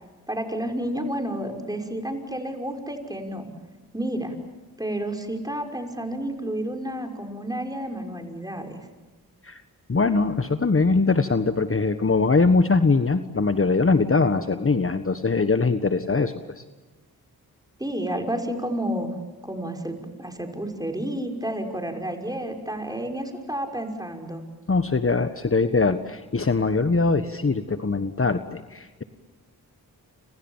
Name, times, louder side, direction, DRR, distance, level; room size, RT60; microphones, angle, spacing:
voice 1, 0.3-3.5 3.9-4.3 4.8-8.8 17.8-19.1 19.4-24.4, right 1 dB, 10° right, 4 dB, 5.8 m, -30 dB
voice 2, 9.9-16.6 24.7-29.0, left 4 dB, 35° left, 10 dB, 1.5 m, -22 dB
30.0 x 26.5 x 7.4 m, 1.2 s
cardioid pair, 55°, 37 cm